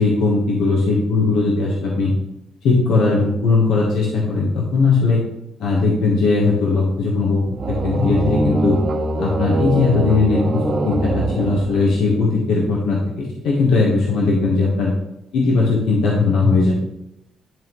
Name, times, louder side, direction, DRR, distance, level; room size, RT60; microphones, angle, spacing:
voice 1, 0.0-2.1 2.6-5.2 5.6-7.4 7.7-8.8 9.2-14.9 15.3-16.7, left 3 dB, 85° left, -3 dB, 1.2 m, -18 dB
sound 1, 7.4-12.2, right 2 dB, 55° right, 1.4 m, -23 dB
10.5 x 3.6 x 3.1 m, 0.86 s
cardioid pair, 90°, 0 cm